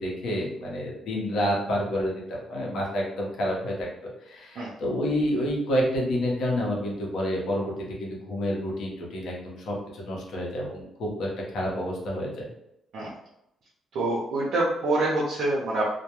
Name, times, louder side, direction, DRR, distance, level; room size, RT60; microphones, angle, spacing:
voice 1, 0.0-7.7 8.0-12.5, equal, 75° left, -2 dB, 0.7 m, -29 dB
voice 2, 13.9-15.8, right 2 dB, 70° right, -5 dB, 0.5 m, -26 dB
2.2 x 2.1 x 2.9 m, 0.81 s
cardioid pair, 90°, 0 cm